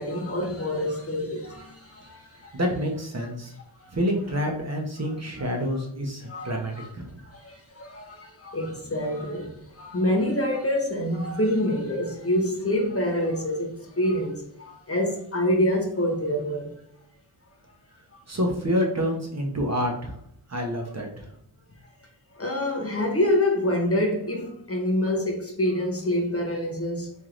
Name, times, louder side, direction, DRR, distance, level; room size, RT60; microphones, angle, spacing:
voice 1, 0.0-2.6 3.8-3.9 5.4-5.5 6.3-6.9 7.2-16.7 22.3-27.1, left 1 dB, 30° left, 0.9 m, -26 dB
voice 2, 2.5-3.5 3.9-7.1 18.3-20.1 20.5-21.3, equal, 35° right, 0.8 m, -27 dB
4.5 x 3.1 x 2.5 m
wide cardioid pair, 100°, 46 cm